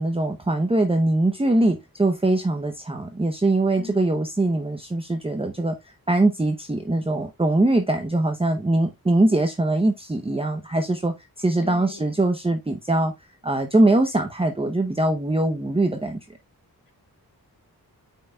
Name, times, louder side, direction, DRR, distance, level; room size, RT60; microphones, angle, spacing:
voice 1, 0.0-5.8 6.1-13.1 13.4-16.2, right 2 dB, 15° right, 0.8 m, -22 dB
voice 2, 3.8-4.2 11.6-12.0, left 5 dB, 60° left, 2.0 m, -39 dB
9.3 x 5.7 x 2.3 m
wide cardioid pair, 115°, 37 cm